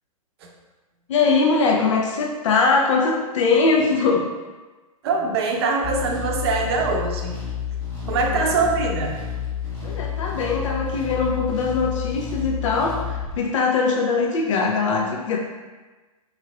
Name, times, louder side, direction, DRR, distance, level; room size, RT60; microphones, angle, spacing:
voice 1, 1.1-4.2 8.0-8.6 9.8-15.4, left 4 dB, 55° left, -1 dB, 0.6 m, -21 dB
voice 2, 5.0-7.4 8.1-9.1, right 4 dB, 45° right, 1 dB, 0.6 m, -23 dB
sound 1, 5.8-13.4, left 8 dB, 15° left, 1.4 m, -30 dB
4.8 x 3.1 x 2.3 m, 1.2 s
figure-of-eight pair, 110°, 19 cm